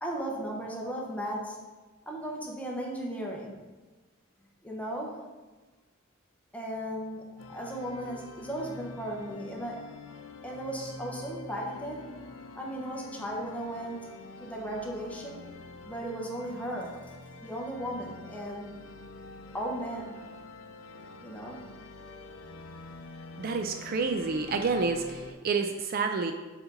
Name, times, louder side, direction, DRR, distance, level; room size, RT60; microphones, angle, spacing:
voice 1, 0.0-1.6 2.1-3.5 4.6-5.1 6.5-9.8 10.4-12.0 12.5-14.0 14.4-15.4 15.9-16.9 17.4-18.7 19.5-20.2 21.2-21.6, right 1 dB, 5° left, -2 dB, 1.0 m, -36 dB
sound 1, 7.4-25.3, left 3 dB, 80° left, 0.6 m, -46 dB
voice 2, 23.4-26.3, right 4 dB, 45° right, 5 dB, 0.4 m, -29 dB
6.9 x 4.2 x 3.9 m, 1.2 s
head